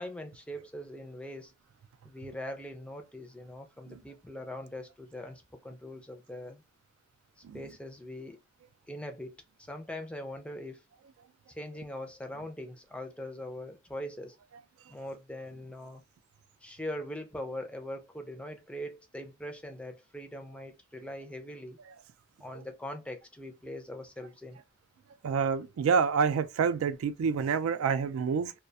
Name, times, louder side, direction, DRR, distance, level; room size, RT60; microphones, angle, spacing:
voice 1, 0.0-1.5 2.0-6.6 7.5-8.4 8.9-10.8 11.5-14.4 14.9-16.0 16.6-21.8 22.4-24.6, left 1 dB, 5° left, 0.3 m, -41 dB
voice 2, 25.2-28.5, right 6 dB, 90° right, 0.3 m, -27 dB
2.3 x 2.1 x 2.6 m
head